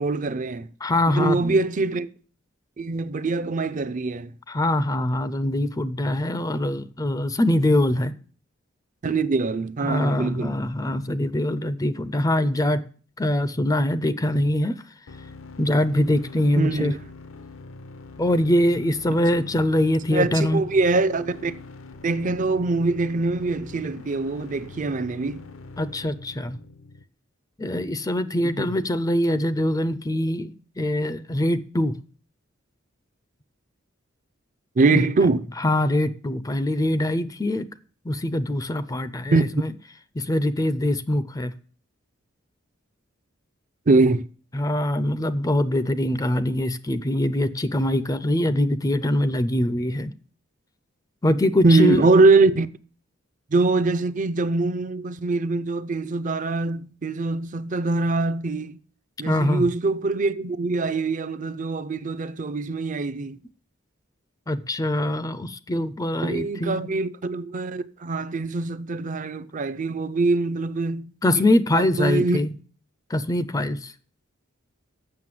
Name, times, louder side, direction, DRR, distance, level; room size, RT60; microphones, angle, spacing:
voice 1, 0.0-0.7 1.1-2.1 2.8-4.3 9.0-10.6 16.6-17.0 20.1-21.6 22.0-25.5 28.4-28.6 34.8-35.5 39.3-39.4 43.9-44.2 51.6-52.7 53.5-58.8 59.2-63.4 66.2-71.1 71.4-71.5 71.7-72.4, right 3 dB, 40° right, 0.5 m, -23 dB
voice 2, 0.8-1.6 4.5-8.1 9.8-12.8 13.2-14.8 15.6-16.9 18.2-20.6 25.8-26.6 27.6-31.9 34.9-35.1 35.6-37.7 38.0-39.7 40.2-41.5 44.5-50.1 51.2-52.1 59.2-59.7 64.5-66.9 71.2-72.5 73.1-73.9, left 1 dB, 15° left, 0.4 m, -23 dB
sound 1, 15.1-27.0, left 3 dB, 70° left, 0.7 m, -43 dB
7.6 x 6.3 x 7.6 m
head